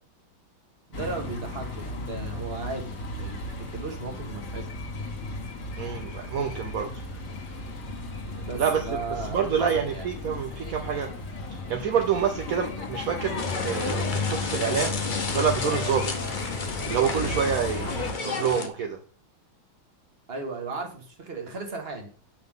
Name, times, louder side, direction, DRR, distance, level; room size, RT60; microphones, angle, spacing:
sound 1, 0.9-18.1, left 2 dB, 50° left, 2.1 m, -34 dB
voice 1, 0.9-4.8 8.4-10.1 20.3-22.1, right 3 dB, 30° right, 3 dB, 1.7 m, -36 dB
voice 2, 5.8-7.0 8.6-8.8 9.2-11.1 11.7-15.0 15.3-16.1 16.9-19.0, right 7 dB, 60° right, 4 dB, 0.9 m, -27 dB
sound 2, 13.4-18.7, left 4 dB, 85° left, 0.4 m, -32 dB
9.1 x 5.7 x 3.7 m, 0.42 s
omnidirectional pair, 2.3 m